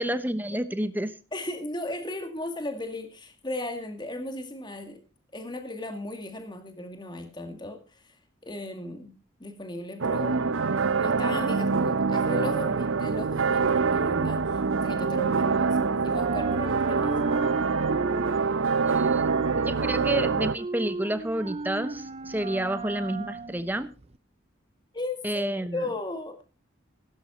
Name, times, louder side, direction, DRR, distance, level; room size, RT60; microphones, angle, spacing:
voice 1, 0.0-1.1 18.9-19.2 19.6-23.9 25.2-25.8, right 1 dB, 10° right, 12 dB, 1.0 m, -29 dB
voice 2, 1.3-5.0 5.3-8.2 8.4-9.1 9.4-10.4 11.0-17.2 24.9-26.4, left 2 dB, 20° left, 6 dB, 2.1 m, -36 dB
sound 1, 10.0-20.6, right 5 dB, 85° right, 0.7 m, -25 dB
sound 2, 12.9-15.7 16.0-24.2, right 3 dB, 30° right, 0.6 m, -36 dB
16.5 x 12.0 x 4.3 m, 0.33 s
head